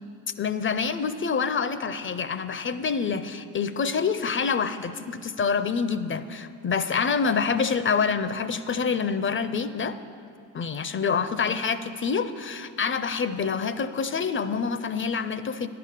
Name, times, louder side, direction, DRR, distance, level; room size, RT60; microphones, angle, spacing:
voice 1, 0.4-10.0 10.5-15.7, left 5 dB, 30° left, 13 dB, 0.4 m, -27 dB
10.5 x 6.8 x 6.5 m, 2.4 s
hypercardioid pair, 55°, 44 cm